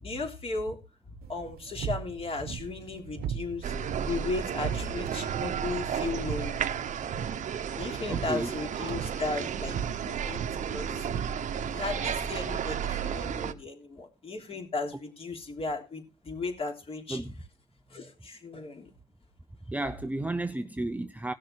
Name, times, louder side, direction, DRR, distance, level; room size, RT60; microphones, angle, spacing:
voice 1, 0.0-0.8 1.3-3.8 4.0-6.6 7.7-9.8 10.1-10.4 10.7-11.1 11.7-17.2 17.9-18.9, left 3 dB, 35° left, 3.5 m, -35 dB
sound 1, 1.2-11.8, right 8 dB, 65° right, 1.2 m, -39 dB
sound 2, 3.6-13.5, right 8 dB, 45° right, 1.1 m, -33 dB
voice 2, 8.1-8.5 17.1-17.3 19.7-21.3, right 2 dB, 10° right, 0.7 m, -32 dB
17.5 x 6.5 x 4.7 m
cardioid pair, 110°, 17 cm